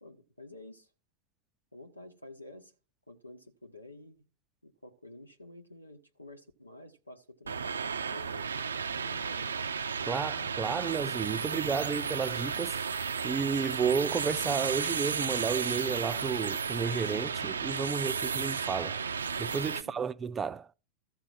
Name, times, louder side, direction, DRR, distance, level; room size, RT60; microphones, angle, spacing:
voice 1, 0.0-0.9 1.7-2.7 3.1-4.3 4.6-9.7 19.8-20.1, left 2 dB, 85° left, 1.3 m, -51 dB
sound 1, 7.5-19.8, right 6 dB, 70° right, 0.5 m, -33 dB
voice 2, 10.1-12.8 13.2-19.0 19.4-20.7, right 6 dB, 20° right, 0.5 m, -32 dB
13.5 x 4.8 x 7.3 m
figure-of-eight pair, 90°, 0 cm